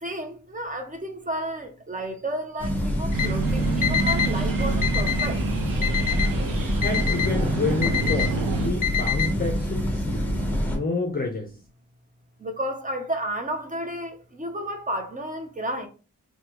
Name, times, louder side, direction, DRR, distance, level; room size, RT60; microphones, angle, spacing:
voice 1, 0.0-5.4 12.4-15.9, right 1 dB, 25° right, 0.7 m, -32 dB
sound 1, 2.6-10.8, equal, 5° left, 1.0 m, -26 dB
Alarm, 3.1-3.3 3.8-4.3 4.8-5.3 5.8-6.3 6.8-7.3 7.8-8.3 8.8-9.3, left 9 dB, 70° left, 0.5 m, -26 dB
sound 2, 3.1-8.7, right 5 dB, 85° right, 0.6 m, -29 dB
voice 2, 6.8-8.3 8.6-10.3 10.6-11.5, left 3 dB, 30° left, 0.6 m, -28 dB
3.2 x 2.3 x 2.9 m
cardioid pair, 70°, 33 cm